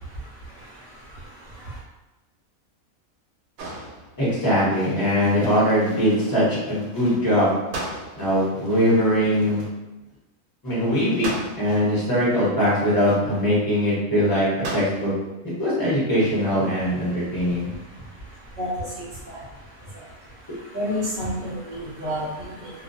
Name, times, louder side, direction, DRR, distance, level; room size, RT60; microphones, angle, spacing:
sound 1, 3.6-4.5 7.7-8.5 11.2-12.0 14.6-15.3, right 2 dB, 75° right, 1.0 m, -34 dB
voice 1, 4.2-7.5 8.2-9.7 10.6-14.5 14.7-15.1 15.6-17.7, equal, 20° left, -9 dB, 0.7 m, -21 dB
voice 2, 20.7-22.7, equal, 50° right, -8 dB, 0.7 m, -29 dB
2.3 x 2.2 x 2.5 m, 1.1 s
omnidirectional pair, 1.5 m